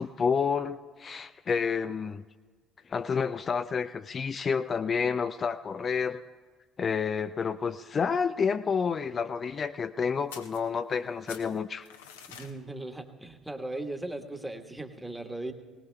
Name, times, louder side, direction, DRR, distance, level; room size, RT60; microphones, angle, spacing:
voice 1, 0.0-2.2 2.9-6.2 6.8-11.9, left 6 dB, 35° left, 11 dB, 0.3 m, -29 dB
sound 1, 10.3-11.0 11.3-12.5, left 7 dB, 75° left, 0.9 m, -47 dB
voice 2, 12.3-15.5, right 2 dB, 5° right, 6 dB, 1.3 m, -38 dB
19.5 x 19.0 x 2.3 m, 1.5 s
figure-of-eight pair, 55°, 0 cm